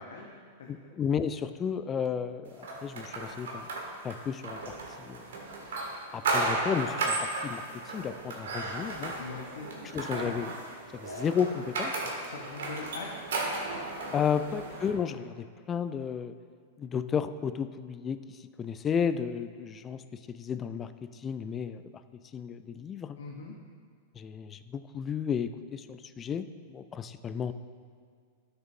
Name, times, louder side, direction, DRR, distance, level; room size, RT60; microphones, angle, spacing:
voice 1, 0.1-0.7 9.0-10.3 12.2-13.3 23.2-23.5, left 4 dB, 70° left, 0 dB, 0.8 m, -43 dB
voice 2, 0.7-3.7 4.0-5.3 6.1-9.1 9.9-10.6 10.9-12.0 14.1-16.3 16.8-21.8 22.3-23.2 24.2-27.5, left 7 dB, 25° left, 12 dB, 0.4 m, -33 dB
sound 1, 2.6-14.9, right 3 dB, 70° right, 1.7 m, -35 dB
12.0 x 6.8 x 2.7 m, 2.1 s
hypercardioid pair, 105°, 0 cm